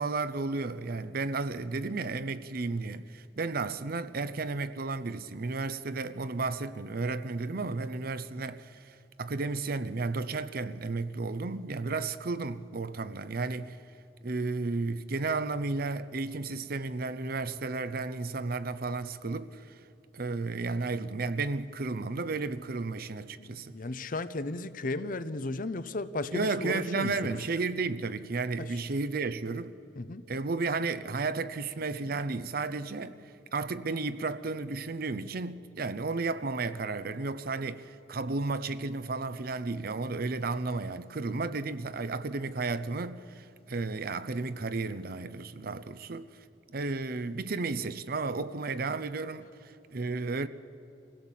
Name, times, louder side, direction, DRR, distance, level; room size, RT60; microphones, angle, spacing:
voice 1, 0.0-13.8 14.2-19.8 20.1-23.8 26.3-29.8 30.3-33.2 33.5-46.3 46.7-50.5, right 3 dB, 55° right, 0.7 m, -33 dB
voice 2, 23.4-27.4 28.6-28.7 30.0-30.3, left 2 dB, 50° left, 0.7 m, -35 dB
24.5 x 16.5 x 7.4 m
head